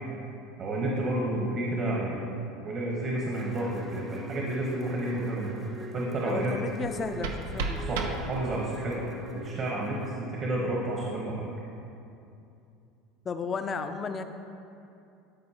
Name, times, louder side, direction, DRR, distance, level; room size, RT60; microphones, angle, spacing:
voice 1, 0.6-2.2 2.6-5.5 5.9-6.6 7.9-9.0 9.3-11.5, right 1 dB, 45° right, -3 dB, 1.2 m, -30 dB
sound 1, 3.3-10.1, right 2 dB, 30° right, 0.8 m, -43 dB
voice 2, 6.2-7.8 13.2-14.2, left 5 dB, 30° left, 8 dB, 0.5 m, -33 dB
sound 2, 6.8-8.8, right 3 dB, 90° right, 0.6 m, -34 dB
12.5 x 4.6 x 2.9 m, 2.6 s
supercardioid pair, 110°, 0 cm